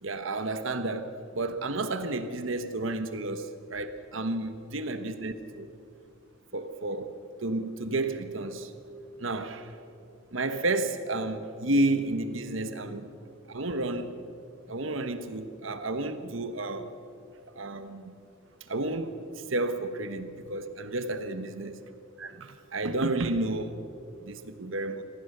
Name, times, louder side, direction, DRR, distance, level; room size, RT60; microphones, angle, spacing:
voice 1, 0.0-5.7 6.5-8.7 9.2-9.7 10.3-13.1 13.5-14.2 14.7-16.9 17.5-18.1 18.7-21.7 22.2-23.8 24.2-25.0, right 2 dB, 70° right, 9 dB, 1.2 m, -31 dB
25.5 x 17.0 x 6.7 m, 2.7 s
head